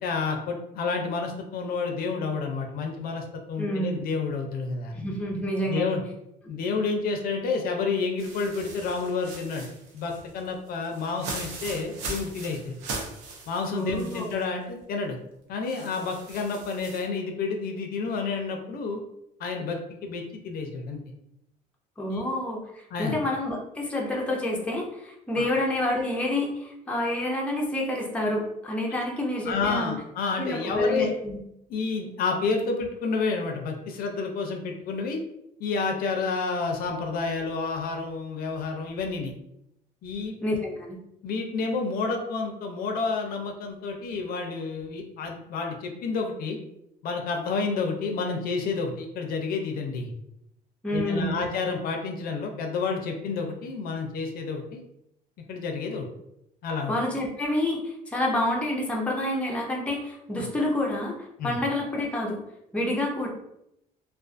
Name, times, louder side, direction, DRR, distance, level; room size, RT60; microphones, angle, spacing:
voice 1, 0.0-4.9 5.7-6.0 6.5-9.7 9.9-12.8 13.5-15.2 15.5-19.0 19.4-21.0 22.1-22.2 22.9-23.2 25.4-25.5 29.5-31.1 31.7-35.2 35.6-39.3 40.0-40.4 41.2-46.6 47.0-50.1 50.9-54.8 55.5-56.1 56.6-56.9 61.4-61.6, left 4 dB, 65° left, 3 dB, 0.5 m, -30 dB
voice 2, 3.6-4.0 4.9-6.0 13.7-14.3 22.0-29.9 30.4-31.4 40.4-41.0 50.8-51.4 56.9-61.2 61.4-62.4 62.7-63.3, left 1 dB, 5° left, -2 dB, 0.5 m, -28 dB
sound 1, 8.2-14.4 14.8-14.9 15.7-17.0, right 3 dB, 90° right, 0.6 m, -39 dB
2.4 x 2.3 x 2.4 m, 0.80 s
cardioid pair, 120°, 17 cm